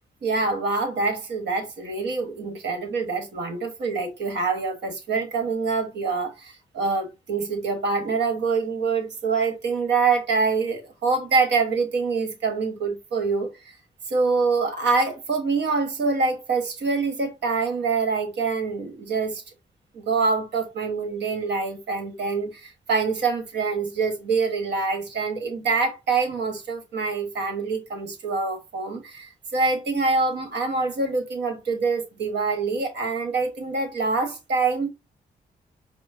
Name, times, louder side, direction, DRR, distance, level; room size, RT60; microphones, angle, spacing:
voice 1, 0.2-13.5 14.1-19.4 19.9-34.9, right 4 dB, 80° right, 1.3 m, -25 dB
5.0 x 2.0 x 3.7 m
cardioid pair, 60°, 18 cm